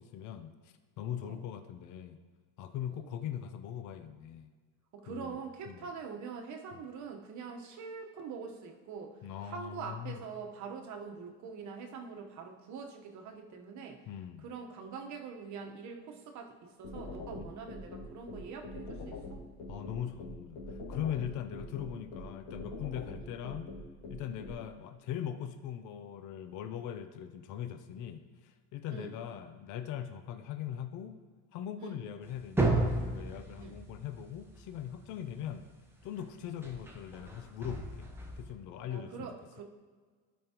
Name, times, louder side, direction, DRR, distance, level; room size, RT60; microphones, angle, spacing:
voice 1, 0.0-2.2 2.6-4.5 5.1-5.4 5.7-5.8 9.2-10.2 14.1-14.5 17.4-17.5 19.7-23.7 24.1-31.1 31.5-35.6 36.0-38.1 38.4-39.3, left 10 dB, 55° left, 9 dB, 0.6 m, -40 dB
voice 2, 4.9-14.0 14.4-19.5 28.9-29.1 31.8-32.0 33.6-33.8 35.3-35.4 36.4-36.5 38.9-39.6, right 5 dB, 50° right, 3 dB, 1.1 m, -44 dB
sound 1, 16.8-24.5, left 2 dB, 85° left, 2.1 m, -43 dB
sound 2, 32.2-35.5 36.6-38.5, right 2 dB, 5° right, 1.0 m, -33 dB
12.0 x 5.3 x 2.9 m, 1.5 s
supercardioid pair, 115°, 37 cm